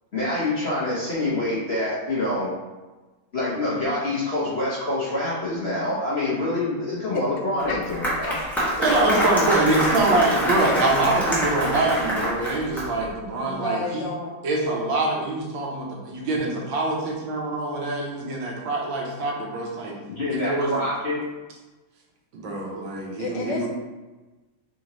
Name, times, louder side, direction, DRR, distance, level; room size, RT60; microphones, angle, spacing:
voice 1, 0.1-2.5 3.3-8.4 20.2-21.2, left 2 dB, 55° left, -9 dB, 0.7 m, -26 dB
Applause, 7.6-13.1, equal, ahead, 0.5 m, -25 dB
voice 2, 8.2-9.6 13.4-14.4 23.2-23.7, left 4 dB, 90° left, 1 dB, 1.7 m, -32 dB
voice 3, 8.8-14.1 14.4-20.0 20.4-20.7 22.3-23.7, right 2 dB, 70° right, -1 dB, 1.5 m, -24 dB
4.1 x 3.8 x 3.0 m, 1.2 s
omnidirectional pair, 2.3 m